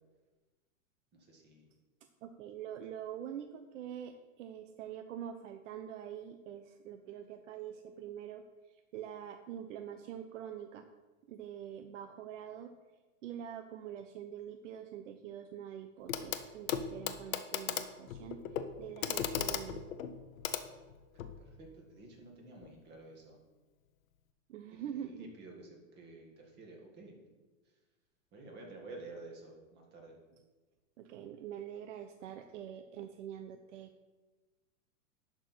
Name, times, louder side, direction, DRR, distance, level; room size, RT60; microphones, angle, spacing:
voice 1, 1.1-1.6 21.4-23.4 24.7-27.1 28.3-30.2, right 2 dB, 25° right, 1 dB, 1.9 m, -51 dB
voice 2, 2.2-8.4 8.7-10.8 11.3-12.7 13.2-18.4 18.8-19.8 24.5-25.3 31.0-33.9, right 9 dB, 65° right, 7 dB, 0.7 m, -45 dB
Clock, 16.1-16.4 16.7-21.4 22.6-22.7, left 8 dB, 80° left, 0.9 m, -37 dB
11.5 x 4.5 x 5.9 m, 1.2 s
supercardioid pair, 150°, 40 cm